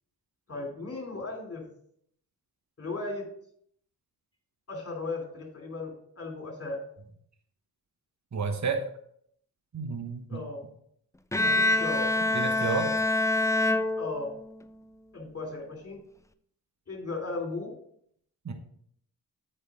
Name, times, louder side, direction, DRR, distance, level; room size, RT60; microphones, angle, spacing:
voice 1, 0.5-1.6 2.8-3.3 4.7-6.8 10.3-10.7 11.4-12.1 14.0-14.3 15.1-16.0 16.9-17.7, left 3 dB, 35° left, 1 dB, 2.9 m, -36 dB
voice 2, 8.3-8.9 9.7-10.4 12.3-12.9 18.4-18.5, right 5 dB, 45° right, 6 dB, 1.2 m, -31 dB
Bowed string instrument, 11.3-14.6, left 2 dB, 10° left, 0.5 m, -26 dB
8.0 x 5.6 x 3.6 m, 0.68 s
cardioid pair, 45°, 40 cm